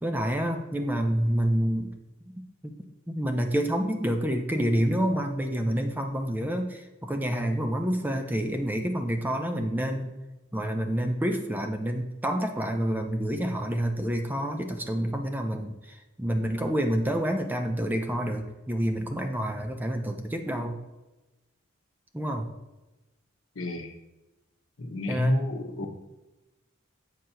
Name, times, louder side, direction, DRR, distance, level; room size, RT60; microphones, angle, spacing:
voice 1, 0.0-1.9 2.6-2.7 3.1-10.1 10.5-20.8 22.1-22.5 25.1-25.5, equal, 10° right, 5 dB, 0.5 m, -28 dB
voice 2, 23.6-23.9 24.8-25.9, left 1 dB, 75° left, 4 dB, 0.9 m, -29 dB
7.6 x 2.8 x 5.6 m, 1.1 s
head